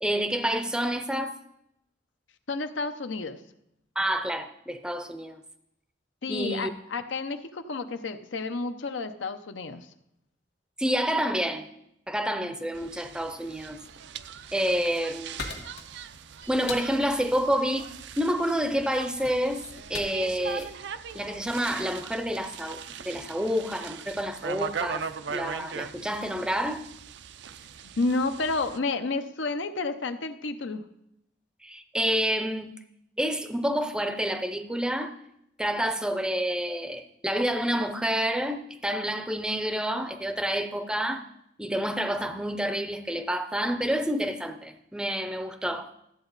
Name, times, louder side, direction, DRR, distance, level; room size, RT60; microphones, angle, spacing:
voice 1, 0.0-1.3 4.0-5.4 6.3-6.7 10.8-11.7 12.1-13.8 14.5-15.7 16.5-17.9 18.2-19.6 19.9-20.7 21.1-22.8 23.0-26.8 31.6-32.7 33.2-35.1 35.6-41.2 41.6-45.9, equal, 5° right, 8 dB, 0.5 m, -28 dB
voice 2, 2.5-3.4 6.2-9.9 28.0-30.8, left 3 dB, 80° left, 9 dB, 0.7 m, -30 dB
sound 1, 12.7-28.8, right 7 dB, 65° right, 0.4 m, -40 dB
sound 2, 14.5-21.9, left 4 dB, 60° left, 1.6 m, -43 dB
13.5 x 7.9 x 4.0 m, 0.81 s
head